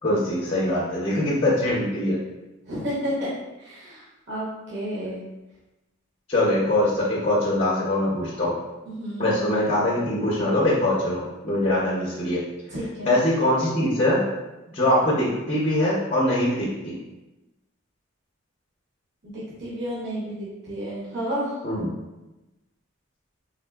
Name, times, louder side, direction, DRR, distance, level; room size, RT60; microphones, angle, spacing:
voice 1, 0.0-2.2 6.3-8.5 9.2-12.4 13.0-14.2 14.7-17.0 21.6-21.9, left 1 dB, 30° left, -6 dB, 0.6 m, -23 dB
voice 2, 2.7-3.3 3.6-5.2 8.9-9.3 12.7-13.1 19.2-21.6, equal, 55° right, -7 dB, 0.9 m, -31 dB
3.7 x 2.6 x 2.3 m, 1.0 s
head